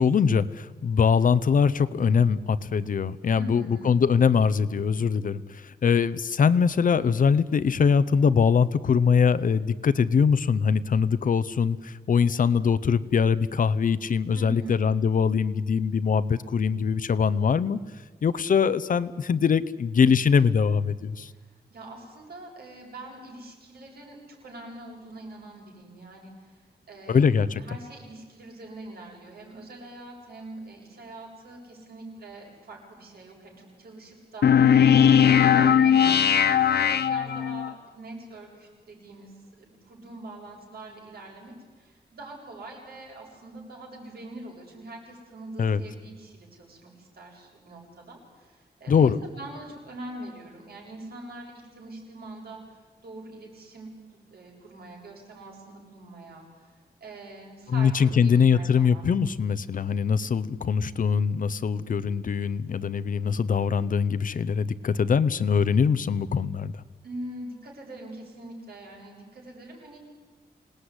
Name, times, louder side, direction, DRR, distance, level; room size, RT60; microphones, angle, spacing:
voice 1, 0.0-17.8 18.2-21.3 27.1-27.6 45.6-45.8 48.9-49.2 57.7-66.7, left 6 dB, 55° left, 14 dB, 0.8 m, -22 dB
voice 2, 3.3-4.0 14.3-14.8 21.3-21.4 21.7-26.6 26.9-27.3 27.6-35.9 36.3-52.6 53.0-56.7 57.0-59.1 67.0-70.0, right 1 dB, 70° right, -1 dB, 7.6 m, -43 dB
sound 1, 34.4-37.7, left 8 dB, 80° left, 0.9 m, -19 dB
26.5 x 19.0 x 9.8 m, 1.4 s
wide cardioid pair, 165°, 17 cm